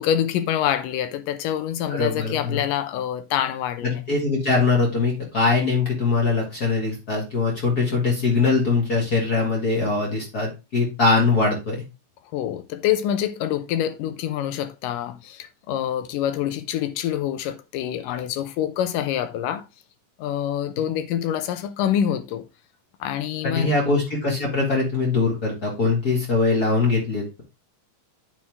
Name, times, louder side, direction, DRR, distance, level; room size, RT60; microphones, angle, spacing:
voice 1, 0.0-4.0 12.3-19.7 20.2-22.4 23.0-23.7, left 10 dB, 85° left, 2.4 m, -26 dB
voice 2, 1.9-2.6 3.8-11.8 23.4-27.4, left 3 dB, 35° left, 1.8 m, -22 dB
9.1 x 4.4 x 3.4 m
omnidirectional pair, 3.8 m